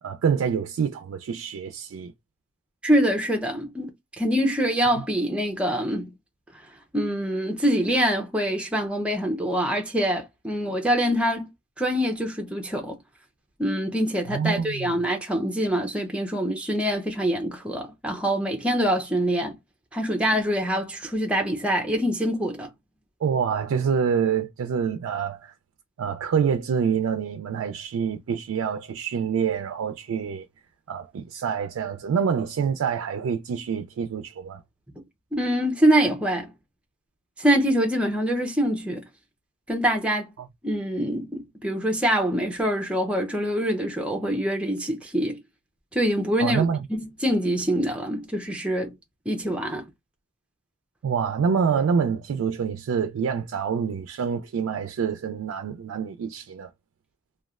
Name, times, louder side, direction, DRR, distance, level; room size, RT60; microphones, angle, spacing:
voice 1, 0.0-2.1 5.0-5.1 14.3-15.0 23.2-25.5 26.0-30.5 30.9-34.6 40.4-40.5 46.4-46.8 51.0-56.7, right 6 dB, 90° right, 0.3 m, -26 dB
voice 2, 2.8-3.9 4.2-6.1 6.9-11.5 11.8-13.0 13.6-19.6 19.9-22.7 35.3-36.5 37.4-39.0 39.7-40.3 40.6-45.4 45.9-46.7 46.9-48.9 49.3-49.9, equal, 5° right, 0.5 m, -24 dB
3.1 x 2.2 x 2.3 m
head